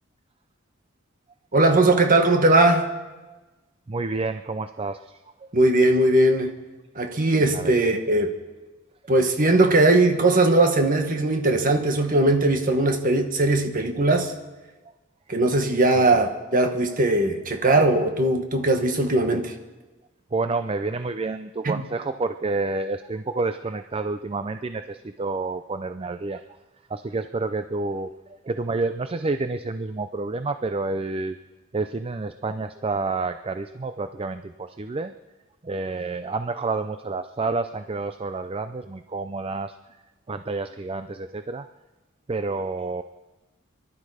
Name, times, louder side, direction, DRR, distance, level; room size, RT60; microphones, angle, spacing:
voice 1, 1.5-2.9 5.5-6.6 6.9-8.4 9.1-14.3 15.3-19.5 21.6-21.8, right 2 dB, 45° right, 1.5 m, -19 dB
voice 2, 3.9-5.5 7.5-7.8 15.9-16.2 20.3-26.4 26.9-28.1 28.4-31.4 31.7-35.1 35.6-39.7 40.3-41.7 42.3-43.0, right 3 dB, 30° right, 0.4 m, -29 dB
24.5 x 12.0 x 5.0 m
head